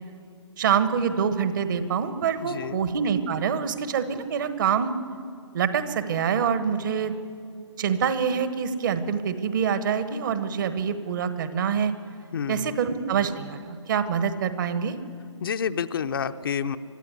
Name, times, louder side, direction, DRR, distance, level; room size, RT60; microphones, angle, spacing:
voice 1, 0.6-4.9 5.5-7.1 7.8-11.9 12.5-14.9, right 7 dB, 40° right, 11 dB, 1.3 m, -25 dB
voice 2, 2.4-2.8 12.3-12.8 15.4-16.8, left 7 dB, 50° left, 9 dB, 0.7 m, -29 dB
23.5 x 13.0 x 9.6 m, 2.3 s
figure-of-eight pair, 130°, 16 cm